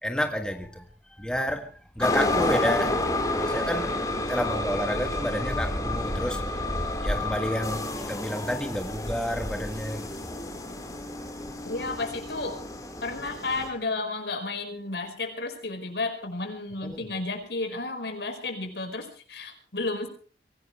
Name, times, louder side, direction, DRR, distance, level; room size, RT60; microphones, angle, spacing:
voice 1, 0.0-10.4 16.8-17.1, equal, 5° left, 4 dB, 1.7 m, -31 dB
sound 1, 2.0-13.7, left 2 dB, 20° left, 4.2 m, -30 dB
voice 2, 11.6-12.6 13.0-20.1, left 3 dB, 80° left, 6 dB, 5.1 m, -32 dB
24.5 x 17.5 x 3.3 m, 0.39 s
head